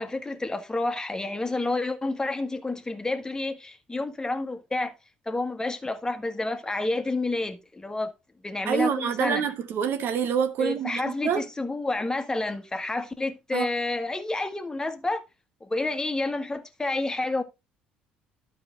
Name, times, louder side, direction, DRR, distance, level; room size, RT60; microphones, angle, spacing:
voice 1, 0.0-4.9 5.2-8.1 8.4-9.4 10.6-15.2 15.6-17.4, left 2 dB, 15° left, 1.5 m, -29 dB
voice 2, 8.6-11.5 13.5-13.7, right 7 dB, 55° right, 0.9 m, -26 dB
12.0 x 5.0 x 3.8 m
hypercardioid pair, 55°, 4 cm